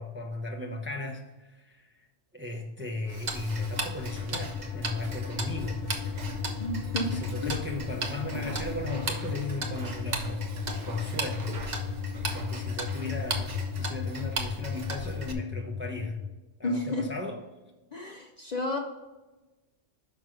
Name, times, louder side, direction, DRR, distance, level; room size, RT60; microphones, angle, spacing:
voice 1, 0.0-1.9 2.3-5.9 7.0-10.5 10.9-11.6 12.3-16.2 16.6-17.4, left 2 dB, 15° right, 1 dB, 0.6 m, -36 dB
sound 1, 3.0-16.3, left 5 dB, 85° left, 1.0 m, -35 dB
Tick-tock, 3.1-15.3, right 3 dB, 40° right, 0.9 m, -37 dB
voice 2, 6.6-7.5 16.6-17.1 17.9-18.8, left 2 dB, 45° left, 2 dB, 0.6 m, -32 dB
6.2 x 5.4 x 5.0 m, 1.1 s
omnidirectional pair, 1.2 m